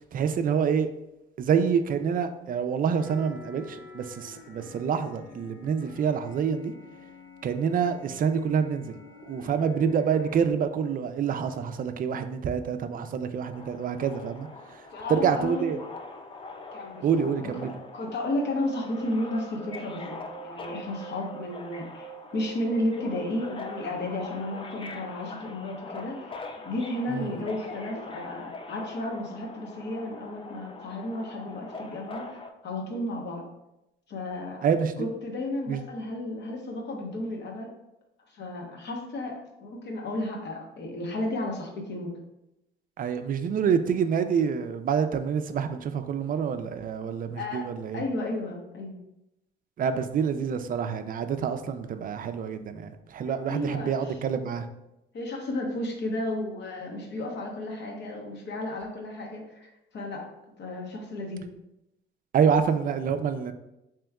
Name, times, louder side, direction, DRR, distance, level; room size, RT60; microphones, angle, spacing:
voice 1, 0.1-0.9 1.4-6.7 7.4-8.9 9.2-14.5 14.7-14.8 15.1-15.8 17.0-17.7 27.1-27.3 34.6-35.1 35.7-35.8 43.0-48.0 49.8-54.7 62.3-63.5, right 7 dB, 45° right, 0.4 m, -27 dB
sound 1, 3.0-10.5, left 4 dB, 90° left, 0.6 m, -49 dB
Subway metro underground, 13.5-32.5, left 3 dB, 25° left, 0.4 m, -43 dB
voice 2, 14.9-15.7 16.7-20.2 20.4-26.4 26.6-33.5 34.1-34.6 35.0-37.7 38.3-42.1 47.4-47.7 47.9-49.0 53.5-54.2 55.1-60.3 60.6-61.5, left 1 dB, 60° left, 1.0 m, -33 dB
sound 2, 18.1-24.1, right 12 dB, 20° right, 0.9 m, -46 dB
3.4 x 3.0 x 3.5 m
cardioid pair, 90°, 20 cm